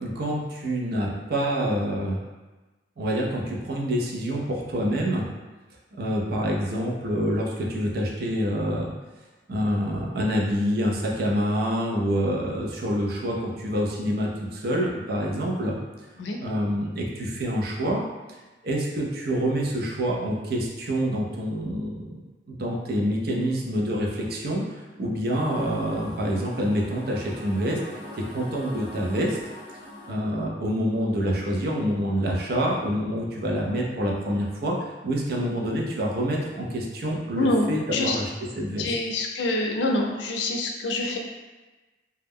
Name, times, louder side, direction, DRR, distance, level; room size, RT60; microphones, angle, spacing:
voice 1, 0.0-2.2 3.0-5.3 6.0-8.9 9.5-15.8 16.4-18.0 18.6-22.1 22.5-27.8 28.1-29.4 30.1-38.3 38.6-38.9, equal, 60° right, -1 dB, 0.5 m, -27 dB
sound 1, 25.3-30.1, left 1 dB, 35° left, 0.7 m, -42 dB
voice 2, 37.3-38.2 38.8-41.2, left 2 dB, 90° left, 1 dB, 0.4 m, -26 dB
2.2 x 2.0 x 3.4 m, 1.2 s
head